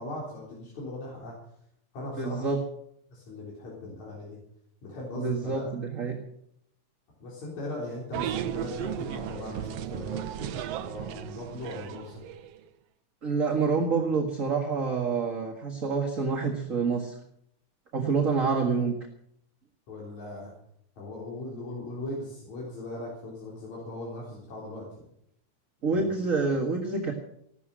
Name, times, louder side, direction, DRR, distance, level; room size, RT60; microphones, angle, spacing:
voice 1, 0.0-1.4 1.9-2.5 3.1-4.4 4.8-5.7 7.2-12.2 19.9-20.5 21.0-25.1 25.9-26.1, left 2 dB, 70° left, -5 dB, 5.2 m, -39 dB
voice 2, 2.2-2.6 5.1-6.1 13.2-17.2 17.9-18.9 25.8-27.1, right 4 dB, 35° right, 2 dB, 1.7 m, -27 dB
sound 1, 8.1-12.6, right 11 dB, 70° right, 1.8 m, -35 dB
17.0 x 12.5 x 6.4 m, 0.71 s
omnidirectional pair, 3.4 m